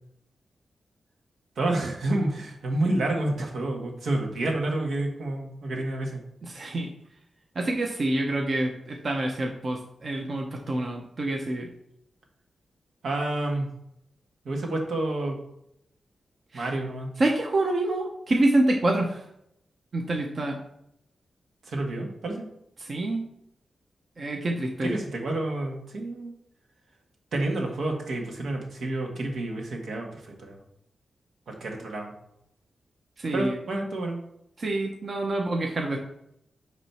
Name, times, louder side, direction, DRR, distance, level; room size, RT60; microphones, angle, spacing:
voice 1, 1.5-6.2 13.0-13.7 14.4-15.4 16.5-17.1 21.7-22.5 24.8-26.3 27.3-30.6 31.5-32.1 33.3-34.2, right 2 dB, 80° right, 1 dB, 1.6 m, -29 dB
voice 2, 6.5-6.9 7.5-11.7 16.5-16.7 17.2-19.3 19.9-20.6 22.8-23.2 24.2-24.9 33.2-33.6 34.6-36.0, right 2 dB, 45° right, 1 dB, 0.9 m, -27 dB
8.7 x 3.2 x 5.7 m, 0.77 s
wide cardioid pair, 125°, 0 cm